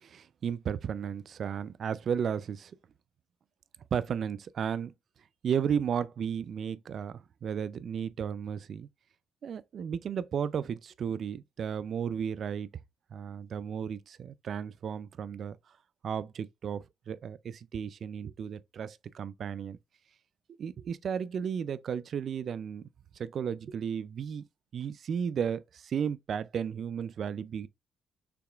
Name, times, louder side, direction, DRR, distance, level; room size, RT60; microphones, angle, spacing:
voice 1, 0.0-2.7 3.9-4.9 5.4-8.9 9.4-12.7 13.1-15.6 16.0-19.8 20.6-22.9 23.2-24.4 24.7-27.7, right 7 dB, 60° right, 0.4 m, -34 dB
6.8 x 2.9 x 2.3 m
cardioid pair, 90°, 0 cm